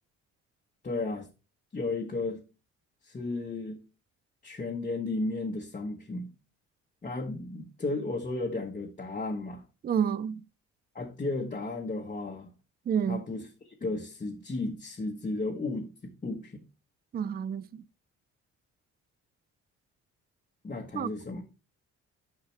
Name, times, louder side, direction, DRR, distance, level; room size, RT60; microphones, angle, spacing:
voice 1, 0.8-1.3 1.7-2.4 3.0-3.8 4.4-6.3 7.0-9.6 10.9-12.5 13.1-16.6 20.6-21.4, left 2 dB, 25° left, 1.1 m, -34 dB
voice 2, 9.8-10.4 12.9-13.2 17.1-17.8 20.9-21.1, right 7 dB, 30° right, 0.4 m, -29 dB
8.8 x 5.7 x 3.3 m
cardioid pair, 90°, 30 cm